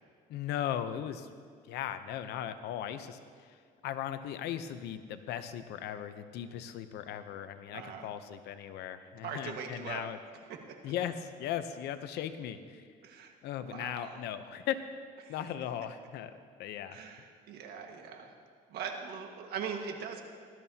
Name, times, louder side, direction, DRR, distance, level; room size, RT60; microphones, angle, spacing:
voice 1, 0.3-1.3 1.6-3.6 3.8-10.2 10.8-12.9 13.4-14.8 15.3-17.0, left 10 dB, 80° left, 10 dB, 0.8 m, -38 dB
voice 2, 7.7-8.1 9.2-10.0 10.7-10.8 13.0-13.3 13.6-14.2 15.2-15.3 16.9-18.3 18.7-20.2, right 6 dB, 75° right, 3 dB, 1.6 m, -41 dB
18.5 x 12.5 x 2.9 m, 2.1 s
cardioid pair, 110°, 17 cm